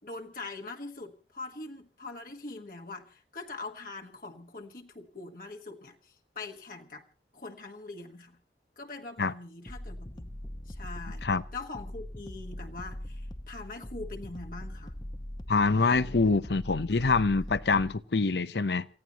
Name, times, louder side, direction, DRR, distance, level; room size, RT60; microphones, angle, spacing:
voice 1, 0.0-7.0 7.3-8.4 8.8-10.3 10.7-14.9 17.0-17.1, left 3 dB, 50° left, 1.4 m, -43 dB
sound 1, 9.7-18.0, left 1 dB, 25° left, 0.9 m, -41 dB
voice 2, 15.5-18.9, left 4 dB, 75° left, 0.7 m, -25 dB
28.0 x 16.0 x 3.0 m
head